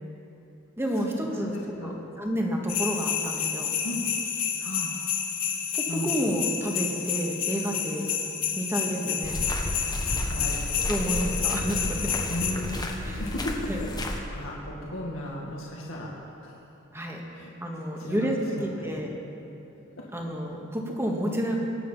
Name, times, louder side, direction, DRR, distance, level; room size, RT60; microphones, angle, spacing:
voice 1, 0.8-1.5 1.8-3.7 5.7-8.0 8.5-9.4 10.9-12.1 13.0-13.2 13.7-13.8 16.9-17.2 17.6-19.2 20.1-21.6, equal, 10° right, 0 dB, 1.8 m, -30 dB
voice 2, 1.3-2.0 3.8-4.0 4.6-4.9 5.9-6.1 10.0-10.6 12.3-12.8 13.2-16.1 16.4-16.5 17.3-17.5 18.0-18.9 20.0-20.1, left 1 dB, 80° left, -4 dB, 2.0 m, -35 dB
sound 1, 2.7-12.5, left 8 dB, 45° left, 2.3 m, -30 dB
sound 2, 9.2-14.2, left 1 dB, 20° left, 1.3 m, -32 dB
Keyboard (musical), 10.8-12.8, left 1 dB, 45° right, 2.5 m, -46 dB
23.5 x 9.5 x 5.7 m, 2.9 s
head